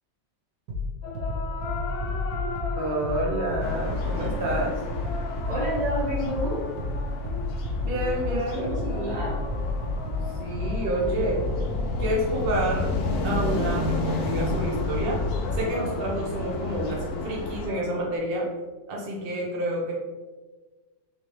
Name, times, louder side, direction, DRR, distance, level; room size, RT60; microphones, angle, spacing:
sound 1, 0.7-15.7, left 2 dB, 90° right, 1.5 m, -31 dB
sound 2, 1.0-13.6 15.2-18.2, left 4 dB, 85° left, 1.3 m, -39 dB
voice 1, 2.8-4.8 7.8-9.2 10.4-11.4 12.0-12.9 13.2-15.2 15.5-18.5 18.9-19.9, right 1 dB, 50° right, -2 dB, 0.7 m, -29 dB
sound 3, 3.6-17.7, left 2 dB, 70° left, 1.0 m, -32 dB
voice 2, 5.5-6.7 8.3-9.4, right 1 dB, 70° right, -6 dB, 2.0 m, -30 dB
3.8 x 2.8 x 3.0 m, 1.3 s
omnidirectional pair, 1.9 m